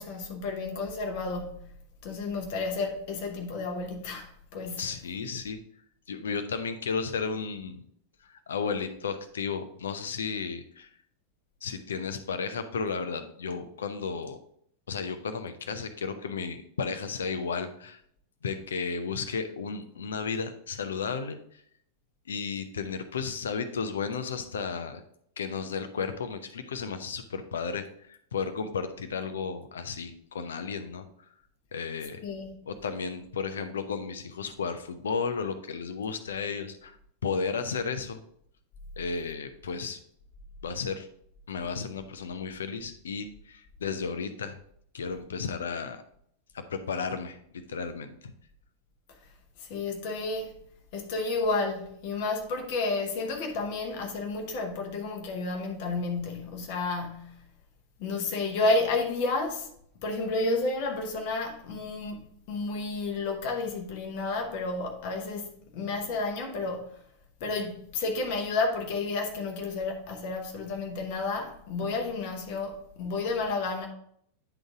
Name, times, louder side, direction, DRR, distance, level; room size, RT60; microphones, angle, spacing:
voice 1, 0.0-1.6 2.0-4.9 32.2-32.5 49.6-50.6 50.9-57.4 58.0-59.7 60.0-62.2 62.5-67.0 67.4-73.9, left 3 dB, 45° left, 1.1 m, -31 dB
voice 2, 4.8-5.6 6.1-7.8 8.5-10.9 11.6-14.4 14.9-18.0 18.4-21.4 22.3-25.0 25.4-31.1 31.7-32.2 32.7-37.0 37.2-38.2 39.0-40.0 40.6-41.1 41.5-44.6 44.9-46.0 46.5-47.4 47.7-48.1, left 5 dB, 65° left, 0.7 m, -33 dB
10.0 x 3.9 x 3.6 m
figure-of-eight pair, 90°, 0 cm